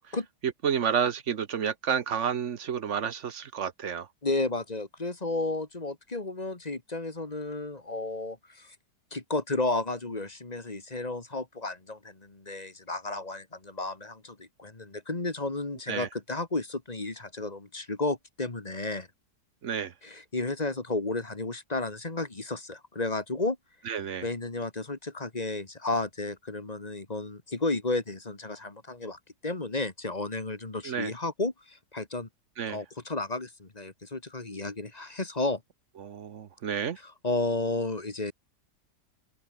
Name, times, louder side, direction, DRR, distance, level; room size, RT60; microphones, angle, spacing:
voice 1, 0.4-4.1 15.9-16.1 19.6-19.9 23.9-24.3 30.8-31.1 32.6-32.8 36.0-37.0, right 7 dB, 50° right, 1.1 m, -30 dB
voice 2, 4.2-8.8 9.1-19.1 20.0-23.6 24.2-32.3 32.7-35.6 37.0-38.3, left 2 dB, 25° left, 2.1 m, -32 dB
open air
omnidirectional pair, 1.8 m